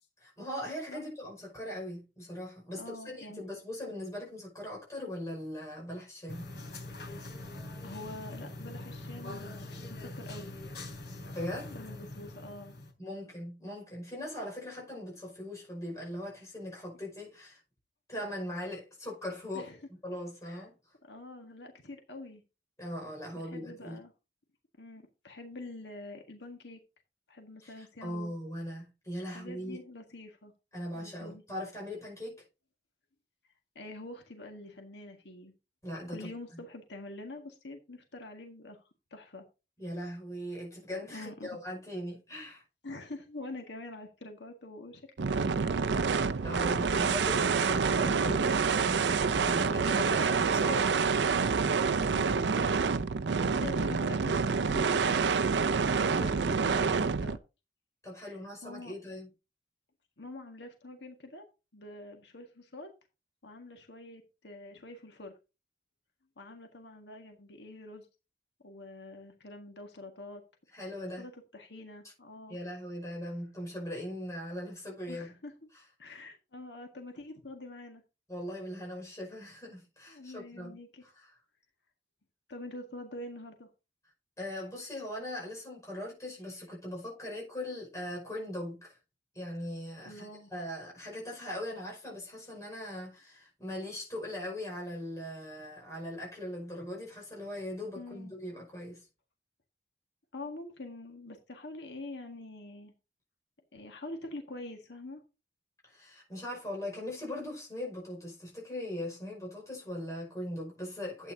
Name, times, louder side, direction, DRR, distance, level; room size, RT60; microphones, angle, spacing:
voice 1, 0.2-6.5 11.3-11.8 13.0-17.6 18.1-19.7 20.0-20.7 22.8-24.0 27.6-29.8 30.7-32.4 35.8-36.6 39.8-42.6 46.4-51.3 55.7-56.4 58.0-59.3 70.7-71.3 72.5-75.3 78.3-80.8 81.2-81.3 84.4-89.0 89.3-99.1 105.8-111.3, left 1 dB, 20° left, 5.4 m, -40 dB
voice 2, 2.7-3.4 7.3-7.5 7.8-10.6 11.7-12.8 19.5-19.8 20.4-20.7 21.1-22.4 23.3-24.1 24.8-26.8 27.3-28.3 29.3-30.5 30.9-31.4 33.8-35.5 36.1-39.4 41.1-41.6 42.8-46.1 51.7-52.9 53.4-57.4 58.2-58.9 60.2-61.5 61.7-62.9 63.4-65.3 66.4-68.1 68.6-70.4 71.2-72.6 75.1-75.5 76.0-78.0 80.1-81.0 82.5-83.7 90.1-90.5 98.0-98.3 100.3-102.9 103.7-105.2, left 2 dB, 80° left, 1.8 m, -46 dB
sound 1, 6.3-12.9, left 2 dB, 65° left, 3.3 m, -43 dB
sound 2, 45.2-57.4, right 5 dB, 80° right, 0.5 m, -27 dB
11.5 x 9.0 x 2.8 m
head